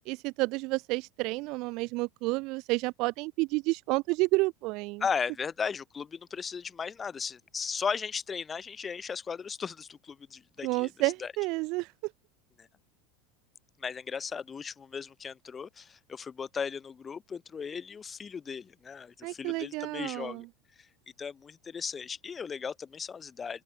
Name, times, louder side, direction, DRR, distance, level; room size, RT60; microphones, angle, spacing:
voice 1, 0.1-5.0 10.6-12.1 19.2-20.5, right 24 dB, 60° right, 0.3 m, -30 dB
voice 2, 5.0-11.3 12.6-12.7 13.8-20.5 21.2-23.6, left 6 dB, 25° left, 0.6 m, -36 dB
open air
supercardioid pair, 120°, 0 cm